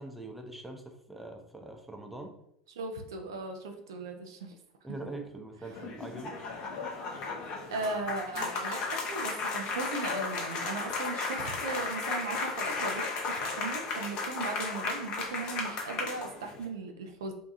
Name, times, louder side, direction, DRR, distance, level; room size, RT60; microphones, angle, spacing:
voice 1, 0.0-2.3 4.8-6.4, right 2 dB, 5° right, 3 dB, 0.5 m, -43 dB
voice 2, 2.8-4.5 7.7-17.3, right 3 dB, 70° right, 4 dB, 0.4 m, -38 dB
sound 1, 5.6-16.6, left 3 dB, 50° left, 0.6 m, -35 dB
2.7 x 2.2 x 2.6 m, 0.77 s
figure-of-eight pair, 70°, 2 cm